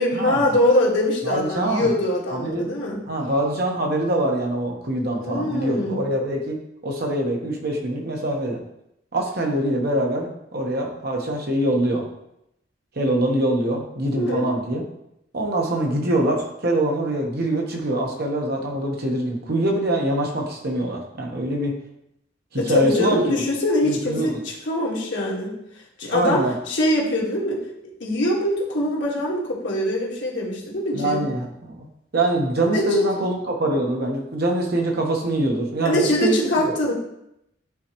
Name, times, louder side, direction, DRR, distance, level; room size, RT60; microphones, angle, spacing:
voice 1, 0.0-3.0 5.2-6.0 14.1-14.5 22.5-25.5 26.0-27.6 28.0-31.2 32.7-33.0 35.8-36.9, left 1 dB, 70° left, -4 dB, 1.7 m, -23 dB
voice 2, 1.2-1.9 2.3-2.7 3.1-6.6 6.8-8.6 9.1-12.0 12.9-14.9 15.3-21.7 22.5-23.4 23.8-24.4 26.1-26.5 30.9-31.9 32.1-36.7, right 1 dB, 55° right, 1 dB, 1.2 m, -24 dB
9.4 x 3.9 x 3.0 m, 0.82 s
head